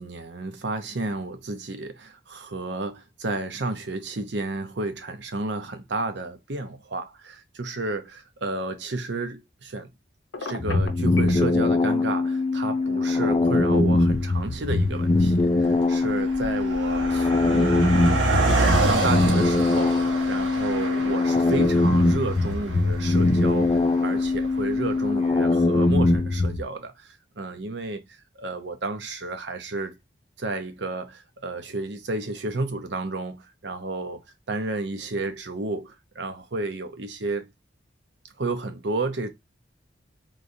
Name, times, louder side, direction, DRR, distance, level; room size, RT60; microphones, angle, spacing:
voice 1, 0.0-9.9 10.4-18.0 18.7-30.0 30.4-34.2 34.5-37.5 38.4-39.3, right 2 dB, 65° right, 0.7 m, -32 dB
Telephone, 10.3-11.4, left 3 dB, 85° left, 0.8 m, -34 dB
sound 1, 10.6-26.6, left 2 dB, 25° left, 0.4 m, -22 dB
Car passing by, 13.5-13.6 14.4-14.6 14.9-25.3, right 2 dB, 80° right, 1.0 m, -28 dB
3.7 x 3.1 x 2.6 m
head